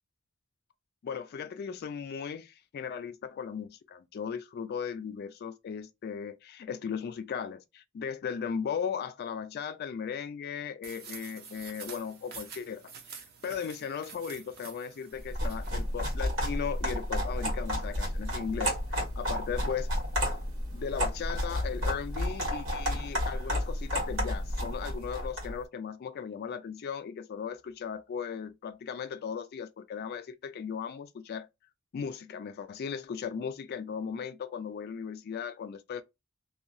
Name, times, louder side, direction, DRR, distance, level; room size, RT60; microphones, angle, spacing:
voice 1, 1.0-19.9 20.7-31.5 31.9-36.0, left 7 dB, 50° left, 0.3 m, -37 dB
sound 1, 10.8-15.8, right 6 dB, 50° right, 0.6 m, -48 dB
sound 2, 15.2-25.6, equal, 70° right, 1.5 m, -31 dB
2.7 x 2.3 x 2.5 m
head